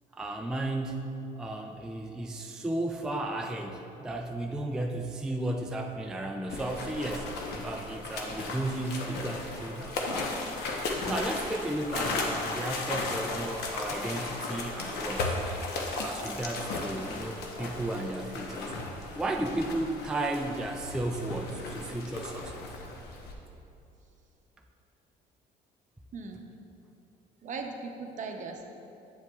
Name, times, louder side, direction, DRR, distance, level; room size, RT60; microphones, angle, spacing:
voice 1, 0.1-1.1 1.4-10.3 11.0-15.4 16.0-18.7 19.1-22.6, right 1 dB, 5° right, 1 dB, 0.3 m, -34 dB
sound 1, 6.5-23.3, left 3 dB, 75° left, 0.9 m, -35 dB
voice 2, 27.4-28.6, right 4 dB, 50° right, 4 dB, 0.7 m, -38 dB
7.9 x 7.8 x 2.3 m, 2.8 s
cardioid pair, 110°, 17 cm